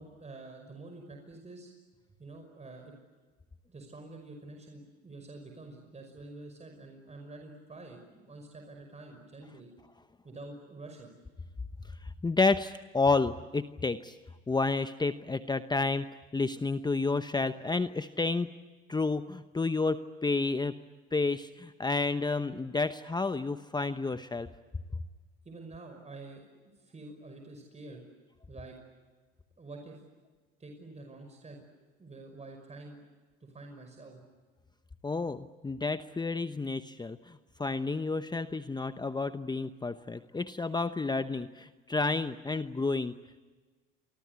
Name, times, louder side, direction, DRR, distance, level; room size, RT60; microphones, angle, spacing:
voice 1, 0.0-1.7 2.2-2.9 3.7-9.7 10.2-11.1 25.4-28.0 28.5-28.7 29.6-30.0 30.6-31.6 32.0-33.0 33.4-34.2, right 2 dB, 20° right, 3 dB, 5.6 m, -47 dB
voice 2, 12.0-14.2 14.5-16.1 16.3-18.5 18.9-20.8 21.1-24.5 35.0-43.1, left 3 dB, 15° left, 10 dB, 0.9 m, -30 dB
28.5 x 24.5 x 8.3 m, 1.4 s
hypercardioid pair, 85°, 30 cm